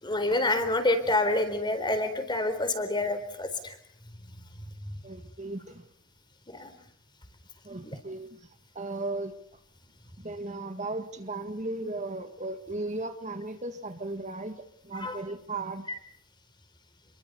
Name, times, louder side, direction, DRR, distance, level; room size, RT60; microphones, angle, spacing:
voice 1, 0.0-3.8 6.5-6.7 7.9-8.0 15.0-15.2, left 2 dB, 20° left, 9 dB, 4.0 m, -27 dB
voice 2, 5.0-5.9 6.6-6.7 7.6-9.6 10.2-15.9, right 2 dB, 35° right, 8 dB, 1.8 m, -36 dB
29.5 x 23.0 x 6.9 m, 0.65 s
head